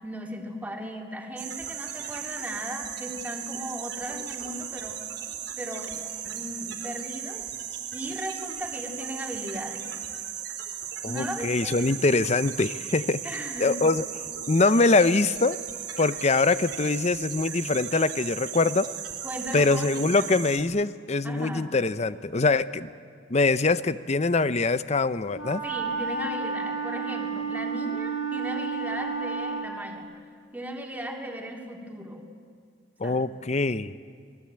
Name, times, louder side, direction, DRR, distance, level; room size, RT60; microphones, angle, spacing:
voice 1, 0.0-5.0 5.6-7.6 7.9-9.9 11.1-11.8 13.2-13.8 19.2-20.3 21.2-21.7 25.6-30.1 30.5-32.2 33.0-33.3, equal, 10° right, 1 dB, 2.9 m, -37 dB
sound 1, 1.4-20.6, right 9 dB, 70° right, 3.9 m, -36 dB
voice 2, 11.0-13.2 13.6-14.0 14.5-15.6 16.0-18.9 19.5-22.9 23.3-25.6 33.0-34.0, left 3 dB, 40° left, 15 dB, 0.7 m, -23 dB
Wind instrument woodwind instrument, 25.3-29.7, right 4 dB, 80° left, 6.8 m, -31 dB
30.0 x 20.5 x 8.8 m, 2.2 s
head